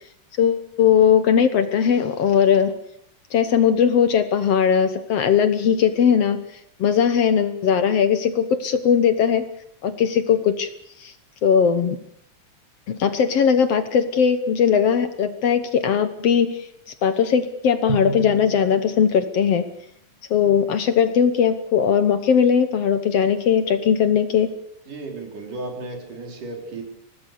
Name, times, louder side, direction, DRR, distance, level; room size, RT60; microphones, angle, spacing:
voice 1, 0.4-2.7 3.3-6.4 6.8-9.4 9.8-10.7 11.0-11.1 11.4-12.0 12.9-16.7 17.0-19.7 20.3-24.5, left 7 dB, 60° left, 10 dB, 1.9 m, -19 dB
Drum, 17.9-19.6, right 5 dB, 40° right, 0.8 m, -32 dB
voice 2, 24.9-26.8, right 3 dB, 85° right, 3 dB, 5.6 m, -34 dB
25.0 x 18.5 x 6.7 m, 0.70 s
omnidirectional pair, 3.6 m